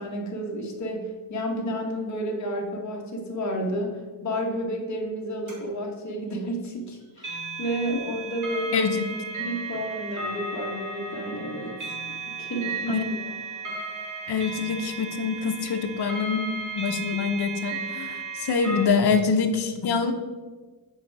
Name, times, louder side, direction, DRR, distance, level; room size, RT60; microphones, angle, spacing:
voice 1, 0.0-8.9 9.4-11.8 12.3-13.3, equal, 40° left, 0 dB, 1.4 m, -31 dB
sound 1, 5.5-5.6 7.2-18.9, right 3 dB, 40° right, 2.4 m, -35 dB
voice 2, 8.7-9.0 12.9-13.0 14.3-16.5 16.8-20.1, left 5 dB, 60° left, 5 dB, 0.9 m, -25 dB
8.0 x 4.9 x 4.7 m, 1.4 s
wide cardioid pair, 130°, 45 cm